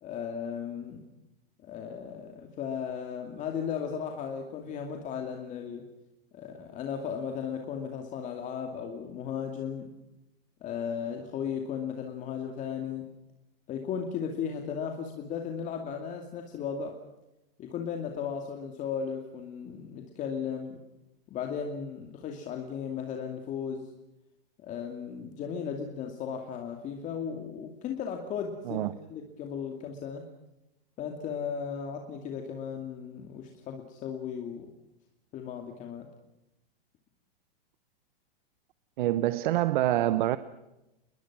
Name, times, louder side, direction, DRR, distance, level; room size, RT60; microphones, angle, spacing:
voice 1, 0.0-1.0 1.6-5.8 6.3-9.9 10.6-13.1 13.7-17.0 17.6-20.8 21.3-23.9 24.6-30.2 31.0-34.7 35.3-36.1, left 7 dB, 25° left, 3 dB, 2.5 m, -36 dB
voice 2, 39.0-40.4, right 14 dB, 55° right, 14 dB, 1.1 m, -26 dB
29.0 x 22.0 x 6.2 m, 0.93 s
supercardioid pair, 155°, 30 cm